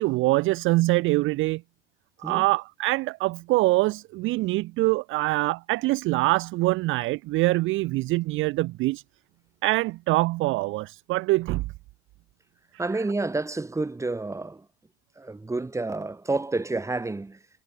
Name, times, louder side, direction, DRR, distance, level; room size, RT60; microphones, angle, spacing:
voice 1, 0.0-1.6 2.2-9.0 9.6-11.6, right 20 dB, 35° right, 0.5 m, -24 dB
voice 2, 12.8-14.7 15.2-17.4, right 3 dB, 10° right, 2.5 m, -29 dB
supercardioid pair, 120°, 34 cm